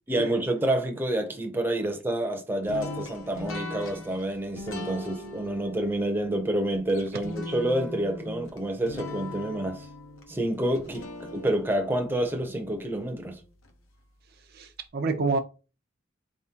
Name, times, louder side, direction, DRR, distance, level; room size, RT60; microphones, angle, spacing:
voice 1, 0.1-9.9 10.3-13.4, right 1 dB, 10° right, 0.6 m, -28 dB
sound 1, 2.7-13.7, left 2 dB, 80° left, 0.8 m, -40 dB
voice 2, 14.5-15.4, right 3 dB, 50° right, 0.5 m, -27 dB
4.2 x 3.6 x 2.8 m
head